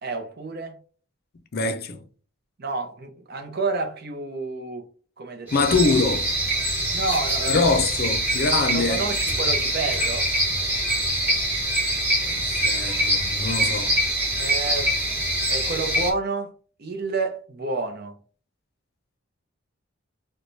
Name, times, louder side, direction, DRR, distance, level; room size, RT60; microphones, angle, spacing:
voice 1, 0.0-0.8 2.6-4.9 5.2-5.8 6.9-7.7 8.7-10.3 14.4-15.0 15.5-16.5 16.8-18.2, right 3 dB, 45° right, 0.6 m, -29 dB
voice 2, 1.5-2.0 5.5-6.3 7.5-9.0 12.2-14.0, left 4 dB, 45° left, 0.5 m, -24 dB
sound 1, 5.5-16.1, right 1 dB, 10° right, 1.1 m, -24 dB
4.6 x 2.2 x 2.6 m
head